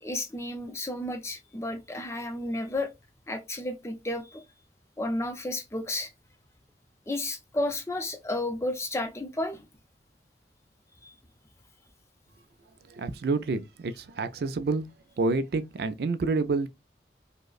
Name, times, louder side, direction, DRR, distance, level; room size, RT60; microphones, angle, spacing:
voice 1, 0.0-2.9 3.3-4.4 5.0-6.1 7.1-9.6 11.0-11.1, left 1 dB, 15° left, 0.5 m, -32 dB
voice 2, 12.9-14.9 15.2-16.7, right 3 dB, 60° right, 0.4 m, -28 dB
5.0 x 2.0 x 2.3 m
head